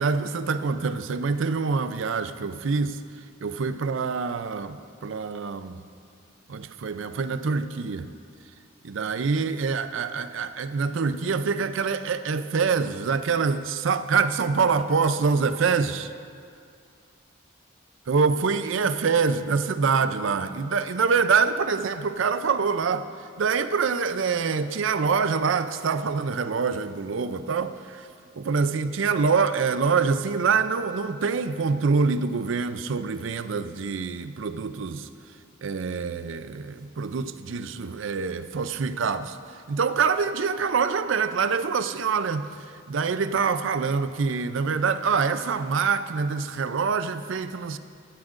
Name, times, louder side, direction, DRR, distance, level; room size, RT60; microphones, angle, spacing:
voice 1, 0.0-3.0 3.4-4.8 5.0-5.8 6.5-8.1 8.8-16.1 18.1-23.1 23.4-28.1 28.4-35.1 35.6-39.4 39.7-42.5 42.9-47.8, right 5 dB, 65° right, 12 dB, 0.4 m, -25 dB
15.0 x 13.0 x 2.5 m, 2.3 s
head